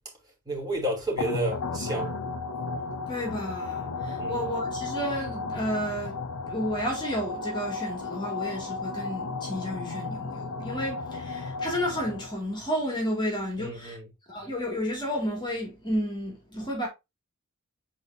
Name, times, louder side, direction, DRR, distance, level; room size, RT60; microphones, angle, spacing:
voice 1, 0.5-2.2 4.2-4.5 13.6-14.0, right 1 dB, 20° right, 2.9 m, -31 dB
sound 1, 1.2-12.5, left 3 dB, 80° left, 0.7 m, -34 dB
voice 2, 3.1-6.2 6.4-14.0 14.3-16.9, equal, 20° left, 2.2 m, -31 dB
8.3 x 4.4 x 2.6 m
head